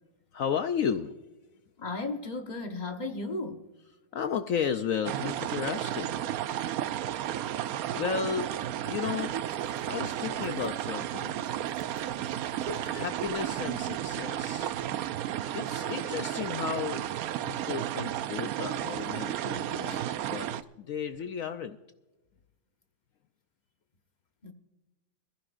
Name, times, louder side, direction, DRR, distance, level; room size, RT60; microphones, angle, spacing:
voice 1, 0.3-1.2 4.1-6.2 7.9-8.5 8.8-9.4 9.9-11.4 12.8-14.7 15.0-17.0 17.4-20.0 20.3-20.5 20.8-21.8, left 7 dB, 75° left, 0.7 m, -33 dB
voice 2, 1.8-3.7 11.6-11.7 19.9-20.1 20.5-20.6 24.4-24.5, left 2 dB, 30° left, 1.0 m, -36 dB
sound 1, 5.0-20.6, right 11 dB, 75° right, 0.8 m, -33 dB
sound 2, 8.3-15.0, right 3 dB, 60° right, 1.5 m, -49 dB
21.5 x 15.0 x 2.5 m
omnidirectional pair, 2.1 m